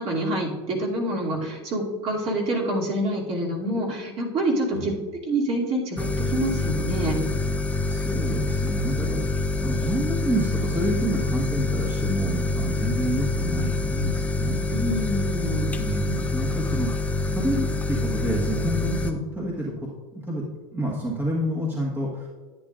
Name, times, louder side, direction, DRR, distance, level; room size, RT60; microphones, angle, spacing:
voice 1, 0.0-5.0 5.3-7.2 14.7-15.7, right 1 dB, 40° right, -4 dB, 2.7 m, -26 dB
sound 1, 6.0-19.1, left 2 dB, 10° left, 0.6 m, -26 dB
voice 2, 7.8-14.7 15.7-19.7 20.1-20.4 20.7-22.3, right 1 dB, 10° right, -4 dB, 1.5 m, -28 dB
10.5 x 9.6 x 2.5 m, 1.4 s
supercardioid pair, 125°, 17 cm